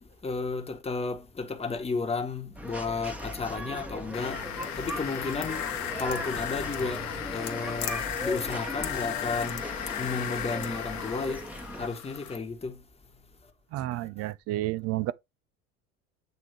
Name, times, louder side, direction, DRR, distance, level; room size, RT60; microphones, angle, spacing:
voice 1, 0.0-4.5 4.8-5.7 6.0-11.5 11.8-12.8 13.9-14.1, left 4 dB, 15° left, 1.4 m, -33 dB
sound 1, 2.5-11.9, equal, 5° right, 1.2 m, -38 dB
sound 2, 4.1-12.4, left 9 dB, 40° left, 1.3 m, -35 dB
voice 2, 13.7-15.1, right 16 dB, 35° right, 0.6 m, -31 dB
8.2 x 3.5 x 3.4 m
figure-of-eight pair, 65°, 42 cm